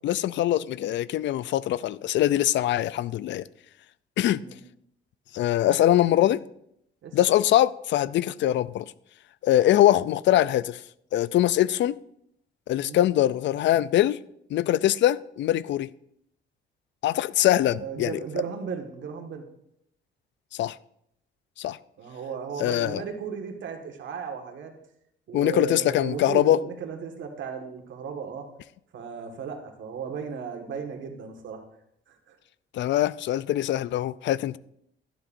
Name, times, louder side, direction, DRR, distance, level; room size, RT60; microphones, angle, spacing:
voice 1, 0.0-3.4 4.2-4.4 5.3-6.4 7.1-8.8 9.4-10.8 11.1-12.0 12.7-14.2 14.5-15.9 17.0-18.2 20.5-20.8 21.6-21.8 22.6-23.0 25.3-26.6 32.7-34.6, left 13 dB, 70° left, 0.4 m, -23 dB
voice 2, 17.6-19.4 22.0-24.7 25.3-28.5 28.9-31.6 32.1-32.4, right 6 dB, 70° right, 1.7 m, -35 dB
12.0 x 11.0 x 2.6 m
cardioid pair, 90°, 20 cm